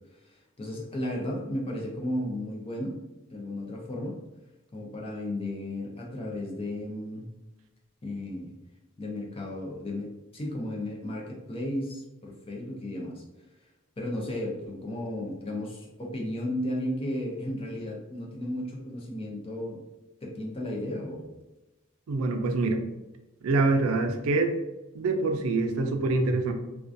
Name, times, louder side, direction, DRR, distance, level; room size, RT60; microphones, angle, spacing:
voice 1, 0.3-3.0 3.3-4.2 4.7-7.3 8.0-8.5 9.0-13.2 14.0-19.8 20.2-21.3, left 1 dB, 25° left, -1 dB, 0.5 m, -34 dB
voice 2, 22.1-22.8 23.4-24.5 24.9-26.5, right 3 dB, 85° right, 5 dB, 0.4 m, -25 dB
2.4 x 2.2 x 2.5 m, 1.0 s
head